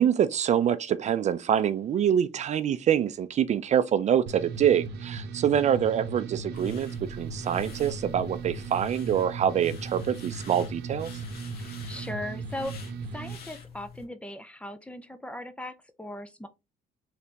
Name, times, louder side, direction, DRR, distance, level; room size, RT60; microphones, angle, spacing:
voice 1, 0.0-11.1, right 9 dB, 45° right, 0.4 m, -25 dB
sound 1, 4.3-13.4, right 4 dB, 80° right, 0.7 m, -37 dB
sound 2, 6.5-14.0, left 5 dB, 65° left, 1.2 m, -46 dB
voice 2, 11.6-16.5, left 1 dB, 5° left, 0.5 m, -39 dB
4.2 x 3.3 x 2.9 m
cardioid pair, 110°, 17 cm